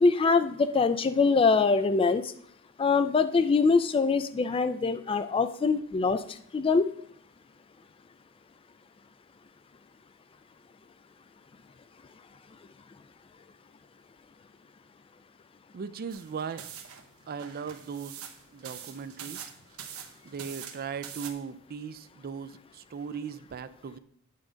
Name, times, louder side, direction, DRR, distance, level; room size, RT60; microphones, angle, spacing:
voice 1, 0.0-2.3 2.8-6.2 6.5-6.9, left 4 dB, 25° left, 12 dB, 0.3 m, -23 dB
voice 2, 15.7-16.7 17.3-18.2 18.5-19.5 20.2-24.0, right 6 dB, 45° right, 13 dB, 0.4 m, -38 dB
sound 1, 16.1-21.3, right 8 dB, 85° right, 0.9 m, -44 dB
8.3 x 3.8 x 5.0 m, 0.68 s
head